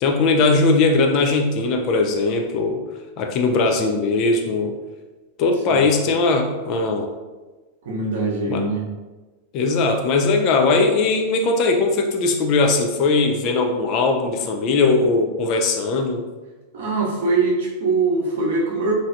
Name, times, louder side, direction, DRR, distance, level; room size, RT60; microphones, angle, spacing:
voice 1, 0.0-2.8 3.2-4.8 5.4-7.1 8.5-8.7 9.5-16.2, left 3 dB, 40° left, 3 dB, 0.4 m, -19 dB
voice 2, 7.8-8.8 16.7-18.9, right 3 dB, 60° right, -2 dB, 0.7 m, -22 dB
3.0 x 2.6 x 2.5 m, 1.2 s
figure-of-eight pair, 90°, 0 cm